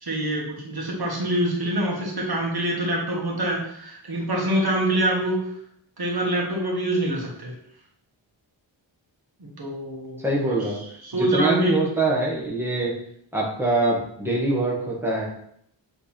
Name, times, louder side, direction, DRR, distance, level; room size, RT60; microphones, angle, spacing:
voice 1, 0.0-5.4 6.0-7.5 9.4-10.6 11.0-11.7, right 1 dB, 50° right, -2 dB, 1.6 m, -25 dB
voice 2, 10.2-10.8 11.1-12.9 13.3-15.3, right 2 dB, 5° right, -4 dB, 1.4 m, -24 dB
7.5 x 3.5 x 4.4 m, 0.69 s
wide cardioid pair, 155°, 46 cm